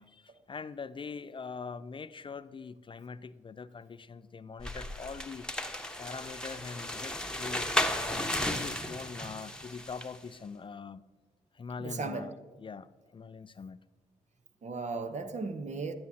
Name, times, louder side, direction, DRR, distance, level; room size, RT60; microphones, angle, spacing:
voice 1, 0.0-5.5 6.0-11.0 11.5-13.8, left 5 dB, 35° left, 0.4 m, -43 dB
sound 1, 4.6-10.2, left 1 dB, 5° left, 1.0 m, -34 dB
voice 2, 11.8-12.3 14.6-15.9, right 4 dB, 55° right, 1.0 m, -36 dB
10.5 x 9.4 x 2.8 m
supercardioid pair, 45°, 15 cm